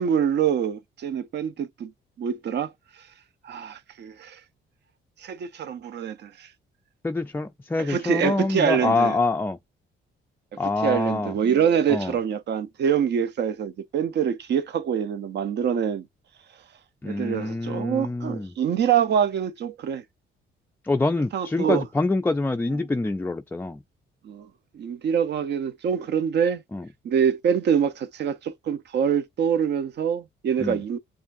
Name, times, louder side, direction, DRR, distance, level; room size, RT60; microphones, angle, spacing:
voice 1, 0.0-1.9 2.2-2.7 3.4-4.4 5.2-6.5 7.8-9.2 10.5-16.1 17.0-20.0 21.3-21.9 24.2-24.5 24.7-26.6 27.0-31.0, right 8 dB, 60° right, 0.7 m, -25 dB
voice 2, 7.0-9.6 10.6-11.3 11.9-12.1 17.0-18.5 20.8-23.8 26.7-26.8 30.6-30.8, left 3 dB, 10° left, 0.3 m, -25 dB
7.0 x 2.5 x 2.5 m
cardioid pair, 90°, 20 cm